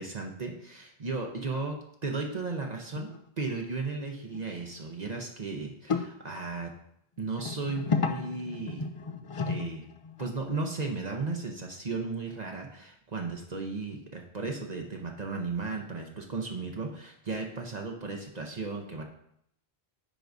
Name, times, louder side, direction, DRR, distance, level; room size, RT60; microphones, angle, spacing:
voice 1, 0.0-6.7 7.2-8.9 9.4-9.9 10.2-19.0, right 3 dB, 45° right, 2 dB, 0.8 m, -35 dB
sound 1, 2.7-3.2 3.5-3.6 4.3-4.4 4.8-4.9 5.9-6.1 7.4-10.3 12.3-12.4, left 5 dB, 45° left, 0.4 m, -33 dB
10.0 x 4.6 x 2.6 m, 0.71 s
omnidirectional pair, 1.1 m